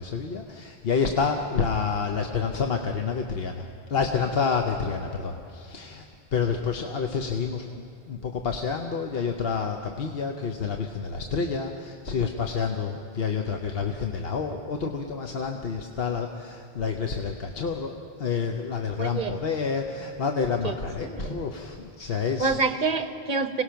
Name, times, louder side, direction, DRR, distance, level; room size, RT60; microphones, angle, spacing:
voice 1, 0.0-6.0 6.3-22.6, left 5 dB, 70° left, 3 dB, 1.2 m, -29 dB
voice 2, 19.0-19.3 20.6-21.4 22.4-23.6, right 4 dB, 45° right, 8 dB, 1.2 m, -27 dB
25.5 x 18.5 x 5.8 m, 2.6 s
omnidirectional pair, 1.1 m